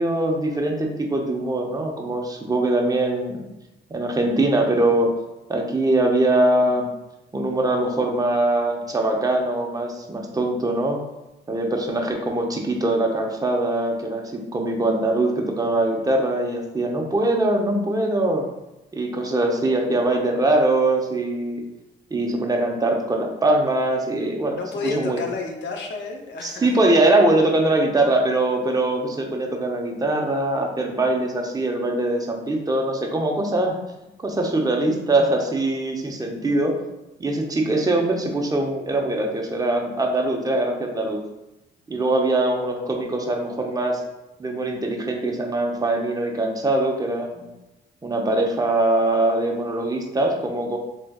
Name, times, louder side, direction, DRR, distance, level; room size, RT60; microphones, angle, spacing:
voice 1, 0.0-3.4 3.9-5.1 5.5-6.9 7.3-11.0 11.5-18.4 18.9-21.6 22.1-25.2 26.4-33.8 34.2-36.7 37.2-41.2 41.9-44.0 44.4-47.4 48.0-50.8, right 2 dB, 20° right, 1 dB, 0.7 m, -22 dB
voice 2, 24.5-26.7, left 4 dB, 65° left, 2 dB, 0.7 m, -31 dB
3.4 x 3.2 x 2.3 m, 0.95 s
cardioid pair, 90°, 20 cm